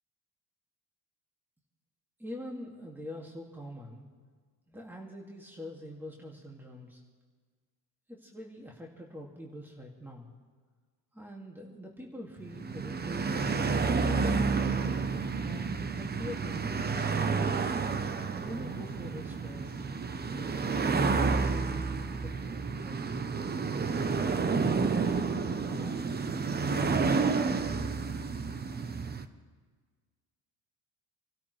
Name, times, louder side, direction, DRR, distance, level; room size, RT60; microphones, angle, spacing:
voice 1, 2.2-4.1 4.7-7.0 8.1-10.3 11.1-13.6 14.0-14.6 15.4-17.7 18.4-19.8 20.2-24.5 24.8-26.3 26.7-27.3, equal, 5° right, -2 dB, 2.3 m, -44 dB
sound 1, 12.4-29.3, right 4 dB, 25° right, 0.8 m, -30 dB
27.5 x 13.0 x 3.3 m, 1.5 s
cardioid pair, 95°, 41 cm